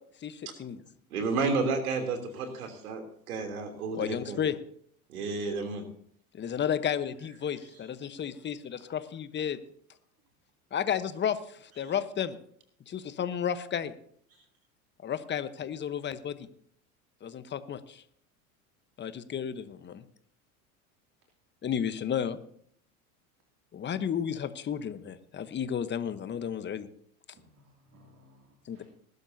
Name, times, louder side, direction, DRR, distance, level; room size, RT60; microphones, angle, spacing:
voice 1, 0.2-0.8 3.9-4.6 6.3-9.6 10.7-12.4 12.9-13.9 15.0-16.5 17.2-18.0 19.0-20.0 21.6-22.4 23.7-26.9 28.7-28.8, left 8 dB, 25° left, 12 dB, 1.1 m, -32 dB
voice 2, 1.1-4.4 5.1-5.8, right 4 dB, 75° right, 5 dB, 3.2 m, -31 dB
voice 3, 7.2-7.8 8.3-8.4 8.8-8.9 11.7-11.9 14.3-14.4 27.3-28.8, right 1 dB, 30° right, -1 dB, 2.8 m, -60 dB
20.5 x 12.0 x 2.8 m, 0.64 s
hypercardioid pair, 85°, 43 cm